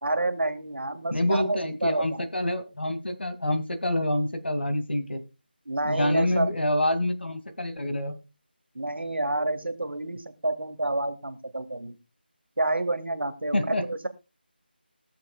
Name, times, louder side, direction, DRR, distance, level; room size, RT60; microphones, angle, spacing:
voice 1, 0.0-2.2 5.7-6.5 8.8-12.0 12.6-14.1, right 2 dB, 75° right, 8 dB, 1.8 m, -29 dB
voice 2, 1.1-5.2 5.8-8.2 13.5-13.8, left 1 dB, 75° left, 9 dB, 2.3 m, -27 dB
21.5 x 7.2 x 2.3 m, 0.28 s
figure-of-eight pair, 165°, 6 cm